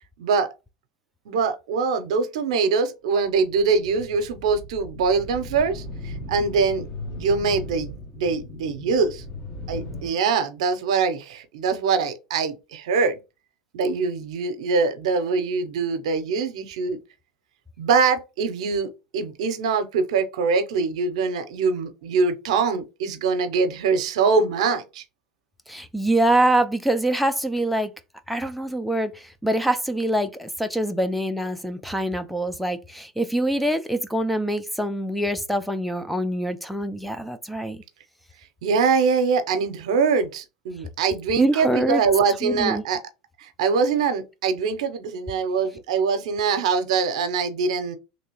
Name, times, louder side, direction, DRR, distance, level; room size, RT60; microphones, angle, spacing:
voice 1, 0.2-0.5 1.3-6.9 7.1-9.2 9.7-13.2 13.7-17.0 17.8-25.0 38.6-43.0 43.4-48.0, right 5 dB, 80° right, 0.7 m, -23 dB
sound 1, 3.2-10.1, left 2 dB, 40° left, 1.2 m, -37 dB
voice 2, 25.7-27.9 28.3-37.8 41.4-42.0 42.4-42.8, right 1 dB, ahead, 0.4 m, -24 dB
3.2 x 2.9 x 2.9 m
hypercardioid pair, 100°, 3 cm